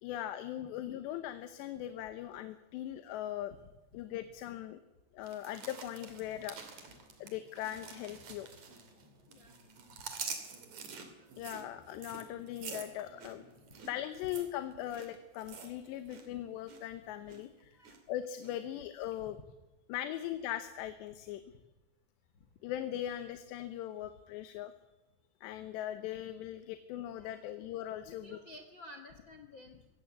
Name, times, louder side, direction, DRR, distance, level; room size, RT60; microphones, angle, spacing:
voice 1, 0.0-3.5 3.9-4.8 5.1-6.8 7.2-8.5 11.4-13.4 13.8-19.4 19.9-21.6 22.6-24.7 25.4-28.4, left 12 dB, 90° left, 10 dB, 3.2 m, -40 dB
sound 1, 5.2-9.0 9.3-16.3 16.5-16.9 17.3-18.0 18.4-18.5, right 6 dB, 45° right, 3.6 m, -47 dB
sound 2, 5.5-13.8, right 1 dB, 85° right, 5.8 m, -63 dB
voice 2, 28.0-29.9, left 2 dB, 70° left, 4 dB, 1.1 m, -53 dB
23.0 x 17.5 x 8.3 m, 1.1 s
omnidirectional pair, 4.8 m